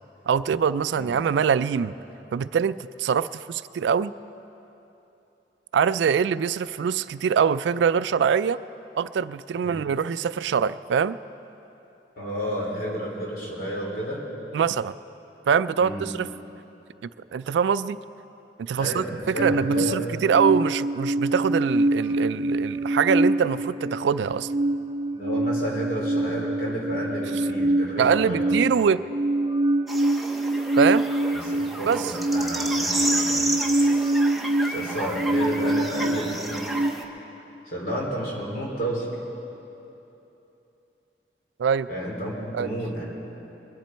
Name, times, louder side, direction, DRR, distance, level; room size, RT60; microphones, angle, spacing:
voice 1, 0.3-1.9 2.3-4.1 5.7-8.6 9.0-11.2 14.5-14.9 15.5-16.3 17.3-18.0 18.6-24.5 28.0-29.0 30.8-31.1 31.8-32.1 41.6-41.9 42.5-42.7, right 7 dB, 90° right, 16 dB, 0.3 m, -23 dB
voice 2, 12.2-14.2 15.8-16.1 18.8-19.1 19.3-20.2 25.1-28.6 31.3-33.5 34.7-36.7 37.7-39.1 41.9-43.0, equal, 55° left, -3 dB, 3.4 m, -31 dB
sound 1, 19.4-36.9, right 1 dB, 25° right, 0.5 m, -25 dB
sound 2, 29.9-37.0, right 1 dB, ahead, 0.8 m, -31 dB
22.5 x 10.5 x 4.4 m, 3.0 s
head